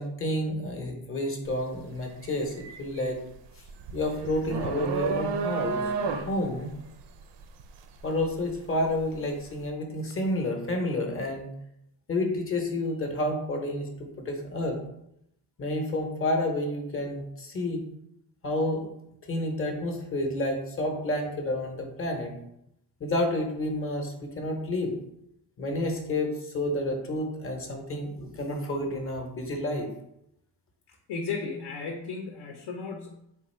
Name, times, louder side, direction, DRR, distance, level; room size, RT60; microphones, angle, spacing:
voice 1, 0.0-3.2 3.9-6.7 8.0-11.5 12.1-13.9 14.2-14.8 15.6-17.8 18.4-18.9 19.3-22.4 23.0-25.0 25.6-29.9, left 1 dB, 30° left, 2 dB, 0.7 m, -30 dB
sound 1, 1.5-1.7 2.1-9.1, right 5 dB, 75° right, 0.5 m, -32 dB
voice 2, 30.9-33.2, left 4 dB, 70° left, 2 dB, 0.6 m, -35 dB
3.8 x 2.4 x 4.2 m, 0.79 s
cardioid pair, 140°, 44 cm